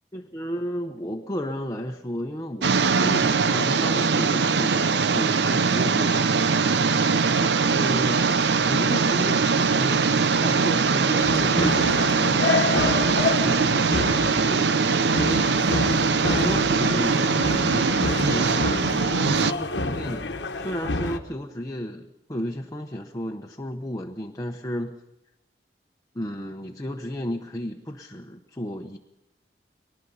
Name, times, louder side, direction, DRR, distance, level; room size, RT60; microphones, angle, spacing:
voice 1, 0.1-6.5 7.3-8.2 8.7-15.5 16.2-24.9 26.1-29.0, equal, 20° left, 2 dB, 1.0 m, -33 dB
sound 1, 2.6-19.5, right 5 dB, 75° right, 0.7 m, -22 dB
sound 2, 11.2-21.2, left 3 dB, 80° left, 1.2 m, -28 dB
23.0 x 20.0 x 5.6 m, 0.91 s
head